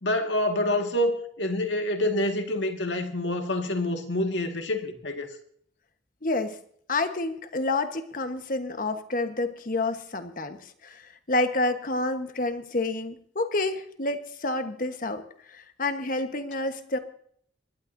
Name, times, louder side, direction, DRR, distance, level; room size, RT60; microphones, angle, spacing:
voice 1, 0.0-5.3, left 1 dB, 85° left, 1.8 m, -27 dB
voice 2, 6.2-6.6 6.9-17.0, left 2 dB, 50° left, 1.2 m, -29 dB
27.0 x 12.0 x 2.7 m
head